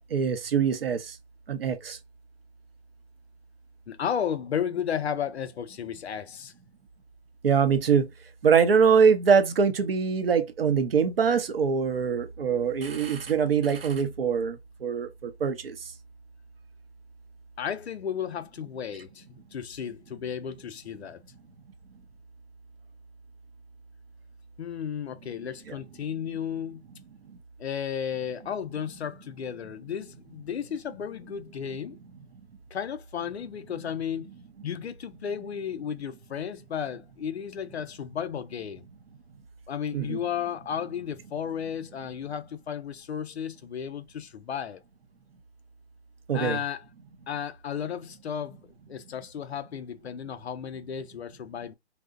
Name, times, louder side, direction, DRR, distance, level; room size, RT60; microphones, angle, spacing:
voice 1, 0.1-1.1 1.5-2.0 7.4-8.1 8.4-14.6 14.8-15.7 39.9-40.2 46.3-46.6, right 6 dB, 60° right, 0.6 m, -23 dB
voice 2, 3.9-6.5 17.6-21.2 24.6-26.8 27.6-32.0 32.7-34.3 34.6-38.8 39.7-44.8 46.3-46.9 47.3-48.6 48.9-51.7, left 8 dB, 70° left, 0.5 m, -33 dB
2.7 x 2.0 x 2.3 m
hypercardioid pair, 165°, 34 cm